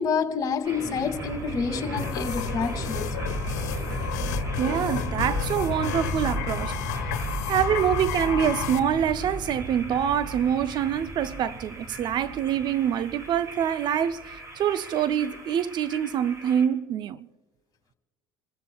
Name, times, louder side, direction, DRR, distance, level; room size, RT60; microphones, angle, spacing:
voice 1, 0.0-3.1, left 5 dB, 40° left, 2.5 m, -28 dB
sound 1, 0.6-16.6, right 1 dB, 35° right, 6.0 m, -34 dB
sound 2, 1.9-8.8, left 11 dB, 85° left, 1.3 m, -33 dB
voice 2, 4.6-7.0 7.5-17.2, right 9 dB, 55° right, 0.6 m, -25 dB
28.5 x 15.0 x 2.3 m
supercardioid pair, 80°, 9 cm